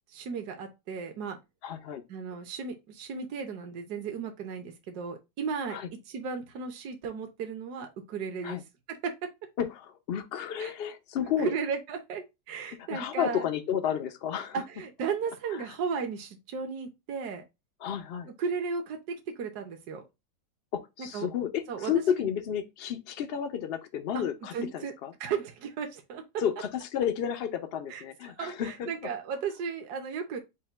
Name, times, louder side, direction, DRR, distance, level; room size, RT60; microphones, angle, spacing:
voice 1, 0.1-1.4 2.1-5.8 6.1-8.6 9.0-9.3 10.6-10.7 11.4-13.5 14.5-17.4 18.4-20.0 21.0-21.3 21.7-22.3 24.1-24.3 24.5-24.9 25.2-26.2 27.9-28.0 28.3-30.4, right 5 dB, 65° right, 1.4 m, -35 dB
voice 2, 1.6-2.0 5.7-5.9 8.4-8.6 9.6-11.5 12.8-14.6 15.5-15.7 17.8-18.3 20.7-25.1 26.4-28.9, left 9 dB, 75° left, 0.5 m, -32 dB
5.5 x 2.2 x 4.3 m
omnidirectional pair, 1.9 m